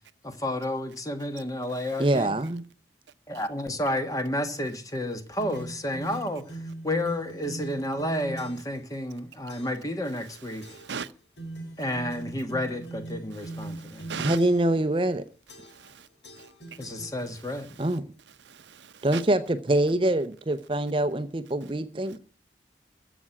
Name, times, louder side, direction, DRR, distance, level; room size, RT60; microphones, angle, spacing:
voice 1, 0.2-2.3 3.3-10.7 11.8-14.1 16.8-17.7, left 1 dB, 20° left, 1.4 m, -31 dB
voice 2, 2.0-2.6 14.2-15.2 17.8-18.0 19.0-22.2, right 1 dB, 30° right, 0.6 m, -24 dB
sound 1, 5.4-8.8 9.5-9.9 10.6-11.0 11.4-14.8 15.5-15.9 16.2-17.6, right 2 dB, 80° left, 4.2 m, -41 dB
voice 3, 13.7-14.4 15.7-16.1 18.5-19.2, right 6 dB, 85° right, 0.7 m, -37 dB
15.0 x 6.0 x 10.0 m
head